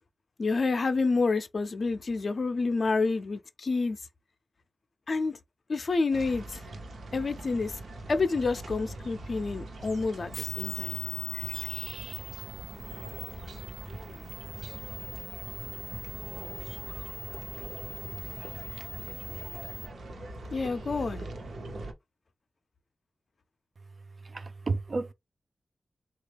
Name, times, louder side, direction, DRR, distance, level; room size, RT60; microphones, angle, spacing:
voice 1, 0.4-4.0 5.1-5.4 5.7-6.6 7.1-7.8 8.1-11.0 20.5-21.3, left 4 dB, 50° left, 0.4 m, -28 dB
sound 1, 6.1-21.9, right 2 dB, 75° right, 0.8 m, -42 dB
sound 2, 10.3-19.9, equal, 5° left, 0.6 m, -41 dB
voice 2, 24.2-25.1, right 3 dB, 40° right, 0.4 m, -32 dB
3.6 x 2.3 x 3.2 m
wide cardioid pair, 125°, 0 cm